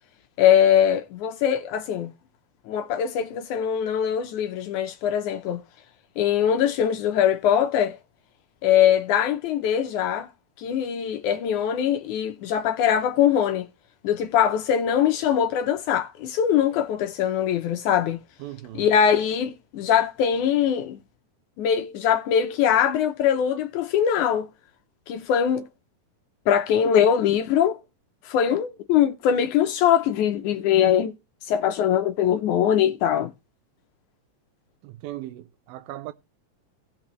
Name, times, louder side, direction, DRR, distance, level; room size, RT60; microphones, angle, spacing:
voice 1, 0.4-2.1 2.7-5.6 6.2-8.0 8.6-10.3 10.6-13.7 14.0-18.2 18.7-21.0 21.6-24.5 25.1-25.7 26.5-27.8 28.3-31.1 31.5-33.3, left 9 dB, 80° left, 1.8 m, -22 dB
voice 2, 18.4-18.9 34.8-36.1, right 15 dB, 90° right, 2.4 m, -38 dB
17.5 x 6.0 x 3.1 m
omnidirectional pair, 4.1 m